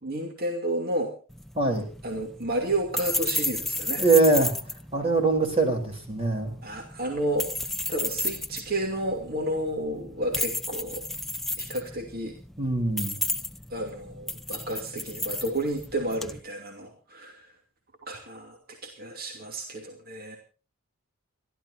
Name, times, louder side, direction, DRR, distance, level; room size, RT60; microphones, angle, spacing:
voice 1, 0.0-1.1 2.0-4.0 6.6-7.5 7.9-11.0 11.6-12.4 13.7-17.5 18.0-18.6 19.0-20.4, right 1 dB, 40° right, 3 dB, 2.6 m, -31 dB
sound 1, 1.3-16.4, left 2 dB, ahead, 0.7 m, -33 dB
voice 2, 1.6-1.9 4.0-4.6 4.9-6.6 12.6-13.2, right 3 dB, 25° right, 4 dB, 3.6 m, -23 dB
30.0 x 12.5 x 2.7 m, 0.37 s
head